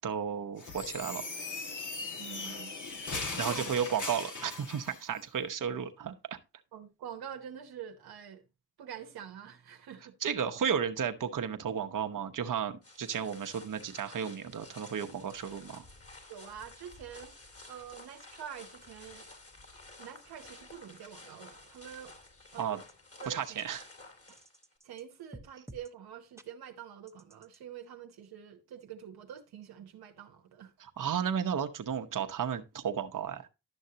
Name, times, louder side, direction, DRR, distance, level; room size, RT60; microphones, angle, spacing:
voice 1, 0.0-1.2 3.4-6.1 10.2-15.8 22.6-22.8 23.3-23.9 30.8-33.5, right 8 dB, 60° right, 1.0 m, -33 dB
sound 1, 0.6-5.0, left 3 dB, 55° left, 1.7 m, -39 dB
voice 2, 2.2-2.7 3.2-3.8 6.7-8.4 8.8-10.1 16.3-17.3 17.7-19.3 20.0-22.1 22.5-22.8 23.2-23.6 24.3-24.4 24.8-30.9, right 9 dB, 85° right, 1.0 m, -46 dB
sound 2, 12.8-24.8, left 2 dB, 40° left, 3.0 m, -53 dB
sound 3, 22.9-23.0 23.2-23.3 23.6-23.7 24.3-25.0 25.3-25.9 26.4-26.5 27.1-27.6, right 1 dB, 10° right, 0.9 m, -51 dB
11.5 x 6.3 x 2.8 m
supercardioid pair, 45°, 36 cm